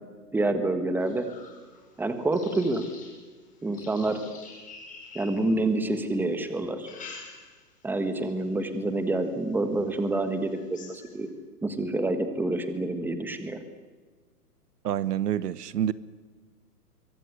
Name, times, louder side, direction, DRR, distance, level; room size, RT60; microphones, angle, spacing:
voice 1, 0.3-1.3 2.0-2.8 3.6-4.2 5.1-6.9 7.8-11.3 11.6-13.6, right 2 dB, 5° right, 9 dB, 1.5 m, -27 dB
sound 1, 1.0-6.0 6.6-7.8 8.2-8.6 9.2-9.3 9.7-9.8 10.2-11.3, left 4 dB, 15° left, 5.4 m, -48 dB
voice 2, 14.8-15.9, right 10 dB, 75° right, 18 dB, 1.2 m, -27 dB
25.5 x 23.5 x 8.2 m, 1.4 s
hypercardioid pair, 145°, 48 cm